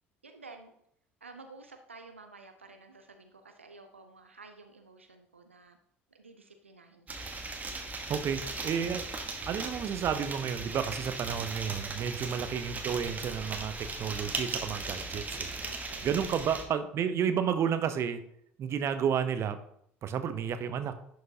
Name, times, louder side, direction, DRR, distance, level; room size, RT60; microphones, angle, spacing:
voice 1, 0.2-0.7 1.2-5.8 6.1-7.3 8.4-8.7 12.3-12.6 15.7-16.1 16.5-16.7, right 3 dB, 90° right, 6 dB, 0.5 m, -52 dB
sound 1, 7.1-16.6, right 3 dB, 25° right, 1.2 m, -38 dB
voice 2, 8.1-9.1 9.5-15.5 16.0-18.2 18.6-19.6 20.0-20.9, right 8 dB, 45° right, 10 dB, 0.7 m, -31 dB
11.0 x 4.7 x 2.8 m, 0.70 s
figure-of-eight pair, 60°, 6 cm